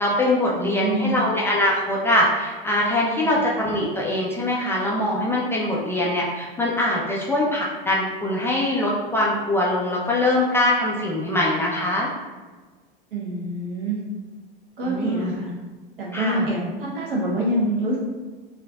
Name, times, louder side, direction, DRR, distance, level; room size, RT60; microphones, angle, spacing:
voice 1, 0.0-12.1 14.8-15.3 16.1-16.5, left 1 dB, 10° left, -5 dB, 0.3 m, -23 dB
voice 2, 0.5-1.2 3.2-3.5 13.1-14.0 14.8-15.5 16.0-18.0, right 1 dB, 65° right, -3 dB, 1.1 m, -26 dB
4.6 x 2.6 x 2.3 m, 1.3 s
figure-of-eight pair, 85°, 29 cm